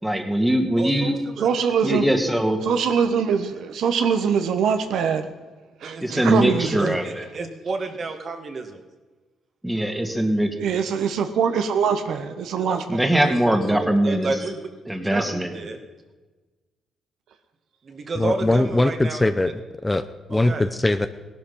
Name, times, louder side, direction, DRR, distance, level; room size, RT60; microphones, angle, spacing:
voice 1, 0.0-1.2 1.8-2.6 6.0-7.2 9.6-10.6 12.9-14.3 14.9-15.5, right 1 dB, 5° right, 5 dB, 1.9 m, -21 dB
voice 2, 0.8-1.5 5.8-8.8 12.5-12.8 13.1-14.7 15.1-15.8 17.8-19.3 20.3-20.7, right 3 dB, 45° right, 5 dB, 1.9 m, -31 dB
voice 3, 1.4-2.1 2.6-5.3 5.8-6.9 10.6-13.0, right 7 dB, 75° right, 8 dB, 1.1 m, -23 dB
voice 4, 18.2-19.5 19.8-21.1, left 2 dB, 15° left, 10 dB, 0.7 m, -21 dB
17.5 x 11.5 x 5.6 m, 1.3 s
cardioid pair, 90°, 0 cm